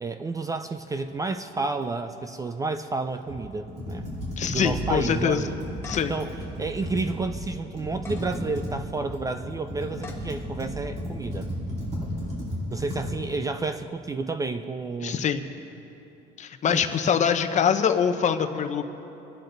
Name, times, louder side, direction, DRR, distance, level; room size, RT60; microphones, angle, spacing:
voice 1, 0.0-4.1 4.5-5.7 6.1-11.5 12.7-15.3 16.7-16.8, right 3 dB, 15° right, 8 dB, 0.4 m, -31 dB
Computer keyboard, 3.3-7.4 7.7-13.1, equal, 35° right, 4.1 m, -34 dB
voice 2, 4.4-5.5 5.9-6.1 15.0-15.4 16.4-18.8, left 7 dB, 40° left, 8 dB, 0.8 m, -24 dB
sound 1, 5.8-6.3 6.8-6.9 7.9-8.3 8.9-9.1 9.9-10.3, left 4 dB, 10° left, 1.5 m, -42 dB
25.0 x 10.5 x 3.9 m, 3.0 s
cardioid pair, 150°, 20 cm